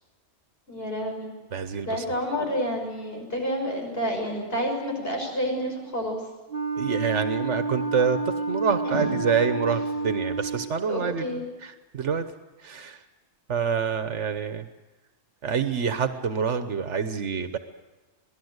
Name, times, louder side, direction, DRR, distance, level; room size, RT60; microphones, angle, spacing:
voice 1, 0.7-1.3 1.8-6.2 8.9-9.1 10.9-11.4, equal, 55° left, 1 dB, 6.3 m, -29 dB
voice 2, 1.5-2.1 6.8-12.2 12.6-13.0 13.5-14.7 15.4-17.6, right 6 dB, 80° right, 9 dB, 1.4 m, -27 dB
Wind instrument woodwind instrument, 6.5-10.7, right 3 dB, 45° right, 2.8 m, -29 dB
27.5 x 19.0 x 8.0 m, 1.1 s
omnidirectional pair, 1.2 m